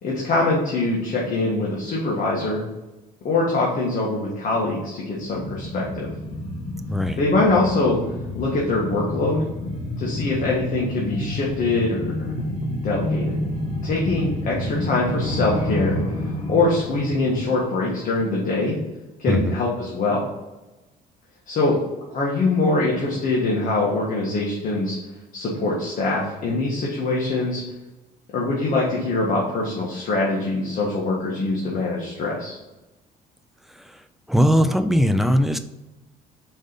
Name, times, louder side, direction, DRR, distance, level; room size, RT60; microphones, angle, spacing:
voice 1, 0.0-2.6 3.2-6.1 7.2-8.0 8.3-9.4 10.0-12.5 12.8-13.4 13.8-16.0 16.5-18.8 19.2-20.3 21.5-21.8 22.1-25.0 25.3-27.6 28.3-32.6, left 2 dB, 50° left, -4 dB, 1.6 m, -23 dB
sound 1, 5.2-18.4 18.7-18.8, left 1 dB, 35° left, 1.4 m, -29 dB
voice 2, 6.9-7.2 19.3-19.6 33.7-34.0 34.3-35.6, equal, ahead, 8 dB, 0.5 m, -20 dB
5.2 x 3.9 x 5.3 m, 1.0 s
cardioid pair, 110°, 17 cm